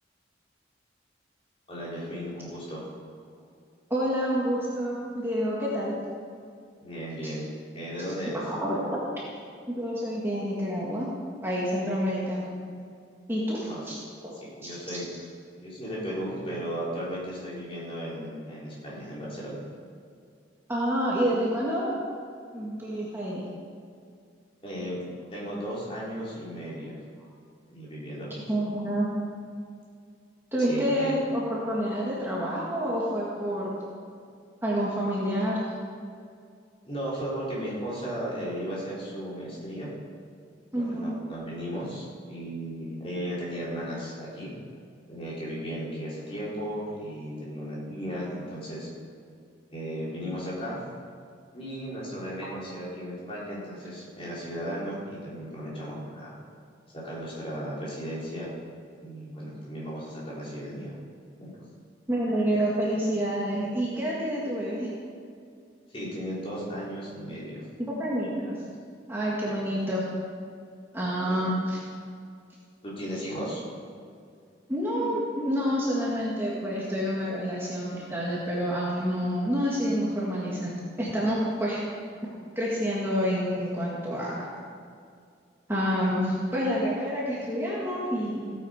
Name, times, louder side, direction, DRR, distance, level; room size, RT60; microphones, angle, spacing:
voice 1, 1.7-2.9 6.8-7.4 7.7-8.4 13.6-13.8 14.4-15.3 15.6-19.6 24.6-25.0 25.3-26.9 27.7-28.4 30.7-31.1 36.8-39.9 40.8-44.5 45.1-48.9 49.7-50.8 51.5-56.3 57.0-58.5 59.0-60.9 61.4-61.5 65.9-67.6 69.5-69.6 71.3-71.5 72.8-73.6 75.9-76.1, equal, 30° left, -7 dB, 3.8 m, -35 dB
voice 2, 3.9-5.9 7.2-7.3 8.4-9.0 9.7-11.1 11.4-12.5 13.3-14.7 20.7-21.9 22.5-23.4 28.5-29.1 30.5-33.7 34.6-35.6 40.7-41.1 62.1-64.9 67.8-68.6 69.1-70.0 70.9-71.8 74.7-80.7 81.0-81.8 82.6-84.4 85.7-88.5, equal, 10° right, -6 dB, 1.9 m, -28 dB
16.0 x 8.9 x 5.0 m, 2.3 s
head